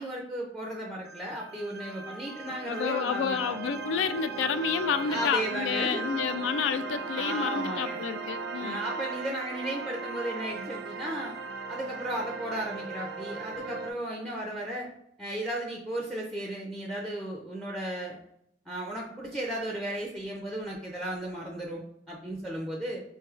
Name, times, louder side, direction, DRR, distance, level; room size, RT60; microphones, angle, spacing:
voice 1, 0.0-3.6 5.0-6.1 7.2-8.0 8.6-11.4 11.7-14.9 15.2-18.2 18.7-21.8 22.1-23.0, right 1 dB, ahead, -1 dB, 0.4 m, -35 dB
sound 1, 1.0-13.9, right 4 dB, 60° right, 0.4 m, -37 dB
voice 2, 2.6-8.8, left 6 dB, 85° left, 12 dB, 0.3 m, -30 dB
4.5 x 3.0 x 2.4 m, 0.73 s
head